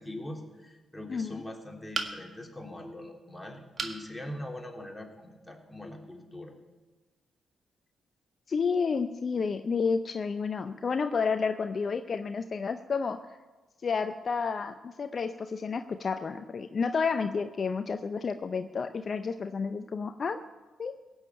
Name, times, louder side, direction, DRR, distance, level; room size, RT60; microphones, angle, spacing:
voice 1, 0.0-6.5, left 1 dB, 10° left, 0 dB, 3.6 m, -42 dB
voice 2, 1.1-1.4 8.5-13.2 13.8-20.4 20.8-20.9, left 5 dB, 50° left, 9 dB, 0.6 m, -30 dB
sound 1, 1.9-2.5 3.8-4.0 4.6-4.7 5.0-5.1, right 4 dB, 50° right, 1.7 m, -34 dB
16.5 x 7.3 x 8.6 m, 1.2 s
hypercardioid pair, 40°, 0 cm